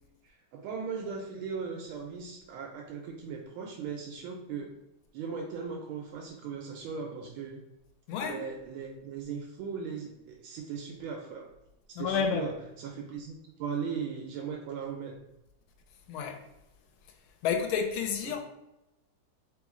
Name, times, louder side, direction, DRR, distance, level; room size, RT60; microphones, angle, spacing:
voice 1, 0.2-4.7 5.1-7.6 8.2-11.5 12.0-15.2 18.3-18.4, right 6 dB, 80° right, 1.4 m, -38 dB
voice 2, 8.1-8.4 11.9-12.5 16.1-16.4 17.1-17.2 17.4-18.4, left 7 dB, 90° left, 1.5 m, -30 dB
3.5 x 3.0 x 3.6 m
omnidirectional pair, 2.3 m